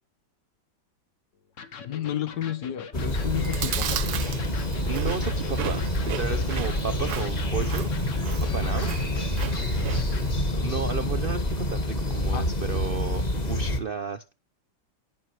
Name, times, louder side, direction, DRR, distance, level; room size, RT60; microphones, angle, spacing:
Electric guitar, 1.6-10.3, left 6 dB, 50° left, 1.3 m, -42 dB
voice 1, 1.8-4.0 12.3-12.5, left 10 dB, 70° left, 1.6 m, -31 dB
sound 1, 2.9-13.8, left 1 dB, 25° left, 1.4 m, -27 dB
Chewing mastication, 3.1-10.4, right 9 dB, 65° right, 1.3 m, -35 dB
voice 2, 4.9-7.9 8.5-8.9 10.5-14.3, right 6 dB, 80° right, 0.5 m, -33 dB
18.5 x 6.2 x 3.0 m
omnidirectional pair, 1.9 m